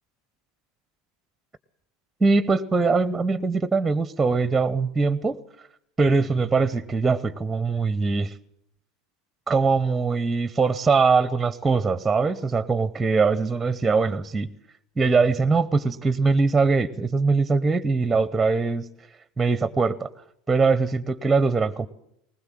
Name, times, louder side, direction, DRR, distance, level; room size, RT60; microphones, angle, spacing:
voice 1, 2.2-5.4 6.0-8.3 9.5-14.5 15.0-18.9 19.4-20.1 20.5-21.9, right 4 dB, 15° right, 19 dB, 0.8 m, -22 dB
20.0 x 19.5 x 7.6 m, 0.73 s
figure-of-eight pair, 80°, 0 cm